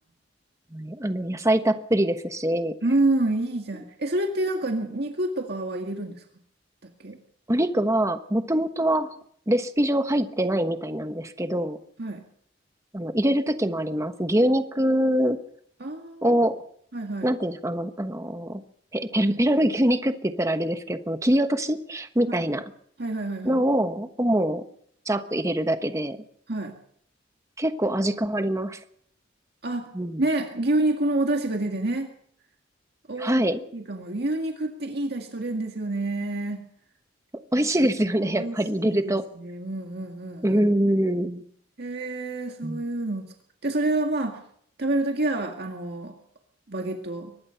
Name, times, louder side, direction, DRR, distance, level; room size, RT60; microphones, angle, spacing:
voice 1, 0.7-2.7 7.5-9.1 9.5-11.8 12.9-15.4 16.2-16.6 17.2-18.6 18.9-22.6 23.4-24.6 25.1-26.2 27.6-28.8 29.9-30.2 33.2-33.6 37.5-39.2 40.4-41.4 42.6-42.8, right 1 dB, 15° right, 9 dB, 1.2 m, -24 dB
voice 2, 2.8-6.2 7.0-7.2 12.0-12.2 15.8-16.4 16.9-17.3 22.3-22.4 23.0-23.6 26.5-26.8 29.6-29.9 30.2-32.1 33.1-33.3 33.7-36.6 37.6-37.9 38.3-40.6 41.8-43.2 43.6-44.4 44.8-46.1 46.7-47.3, right 2 dB, 55° right, 3 dB, 1.9 m, -28 dB
23.5 x 19.5 x 5.8 m, 0.67 s
head